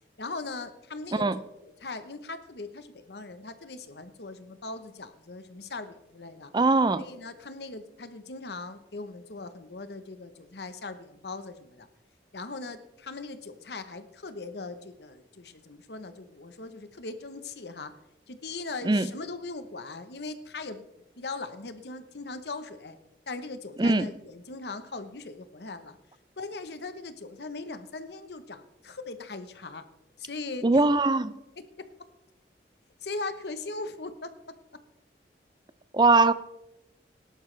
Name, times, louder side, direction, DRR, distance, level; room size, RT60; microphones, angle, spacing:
voice 1, 0.2-6.5 7.0-11.9 12.3-17.9 18.3-20.9 21.2-23.0 23.3-26.0 26.4-29.8 30.2-30.8 31.6-31.9 33.0-34.3, left 3 dB, 70° left, 1.0 m, -39 dB
voice 2, 6.5-7.0 18.8-19.1 23.8-24.1 30.6-31.3 35.9-36.3, right 3 dB, 25° right, 0.4 m, -21 dB
18.0 x 11.5 x 3.3 m
head